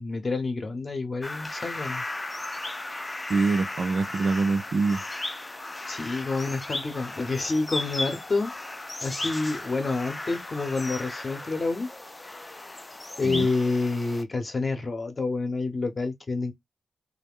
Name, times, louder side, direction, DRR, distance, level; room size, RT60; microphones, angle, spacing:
voice 1, 0.0-2.0 5.9-8.5 9.0-11.9 13.2-16.5, left 3 dB, 40° left, 0.7 m, -28 dB
sound 1, 1.2-14.2, left 2 dB, 25° left, 0.3 m, -36 dB
voice 2, 3.3-5.0 13.2-13.5, right 4 dB, 60° right, 0.3 m, -25 dB
2.4 x 2.1 x 3.5 m
cardioid pair, 80°, 0 cm